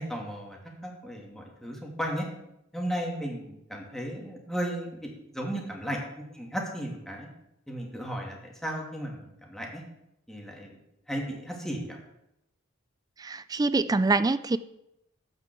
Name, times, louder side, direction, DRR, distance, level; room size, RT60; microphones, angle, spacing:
voice 1, 0.0-2.3 2.7-7.3 7.7-9.8 10.3-10.8 11.1-12.0, equal, ahead, -1 dB, 2.7 m, -35 dB
voice 2, 13.2-14.6, right 3 dB, 20° right, 15 dB, 0.4 m, -25 dB
13.0 x 5.9 x 8.2 m, 0.83 s
head